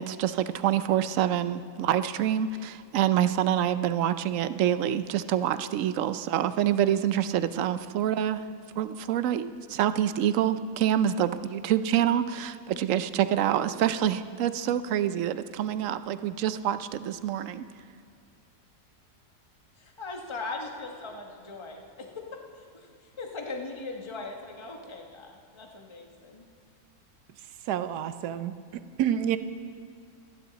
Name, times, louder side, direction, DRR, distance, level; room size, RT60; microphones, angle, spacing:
voice 1, 0.0-8.4 8.8-17.6, right 10 dB, 65° right, 12 dB, 0.9 m, -26 dB
voice 2, 19.8-26.5, left 3 dB, 20° left, 2 dB, 1.1 m, -40 dB
voice 3, 27.7-29.4, right 10 dB, 85° right, 12 dB, 1.2 m, -29 dB
26.5 x 10.5 x 4.0 m, 2.2 s
omnidirectional pair, 1.7 m